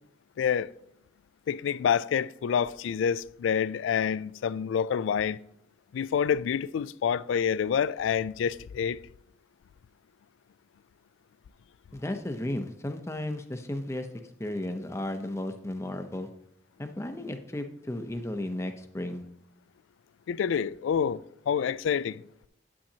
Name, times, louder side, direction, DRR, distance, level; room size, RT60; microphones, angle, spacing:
voice 1, 0.4-0.7 1.5-5.4 5.9-9.0 20.3-22.2, left 7 dB, 80° left, 0.3 m, -27 dB
voice 2, 11.9-14.1 14.4-16.3 16.8-19.2, left 1 dB, 15° left, 0.6 m, -34 dB
8.9 x 8.7 x 2.8 m
head